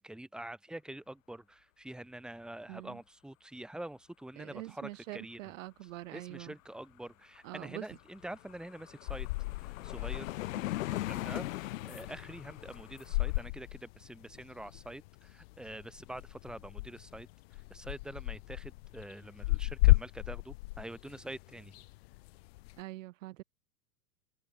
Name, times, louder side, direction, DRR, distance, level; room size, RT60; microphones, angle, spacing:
voice 1, 0.0-5.4 5.8-9.3 9.6-10.3 10.9-21.8, right 1 dB, ahead, 3.5 m, -46 dB
voice 2, 2.7-3.0 4.4-6.5 7.4-7.9 22.8-23.4, right 17 dB, 55° right, 2.6 m, -44 dB
sound 1, 7.4-7.5 7.7-13.5, left 16 dB, 55° left, 1.8 m, -40 dB
sound 2, 9.1-22.8, left 22 dB, 40° left, 1.1 m, -34 dB
supercardioid pair, 155°, 47 cm